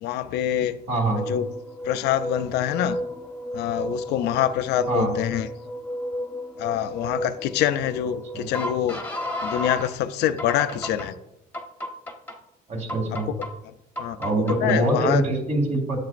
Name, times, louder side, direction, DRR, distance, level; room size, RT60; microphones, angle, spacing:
voice 1, 0.0-0.8 1.2-1.5 1.8-3.0 3.5-5.5 6.6-9.0 9.4-11.1 13.1-13.3 14.0-14.2 14.6-15.2, left 11 dB, 80° left, 12 dB, 0.5 m, -25 dB
voice 2, 0.9-1.2 4.9-5.1 8.3-8.5 12.7-13.3 14.2-16.0, right 2 dB, 45° right, 1 dB, 2.6 m, -24 dB
sound 1, 1.0-9.9 10.4-11.1 11.5-12.3 12.9-13.5 14.0-14.8, equal, 10° left, 1.1 m, -33 dB
10.5 x 7.3 x 2.5 m, 0.87 s
cardioid pair, 110°, 17 cm